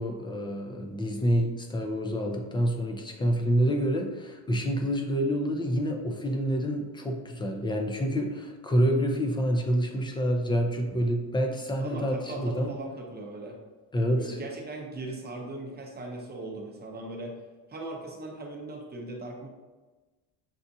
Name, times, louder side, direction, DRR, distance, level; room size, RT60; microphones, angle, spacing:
voice 1, 0.0-12.7 13.9-14.4, equal, 10° left, 2 dB, 0.4 m, -27 dB
voice 2, 11.8-13.6 14.1-17.4 17.7-19.5, right 2 dB, 25° right, 1 dB, 0.7 m, -39 dB
7.0 x 2.4 x 2.7 m, 1.2 s
cardioid pair, 130°, 42 cm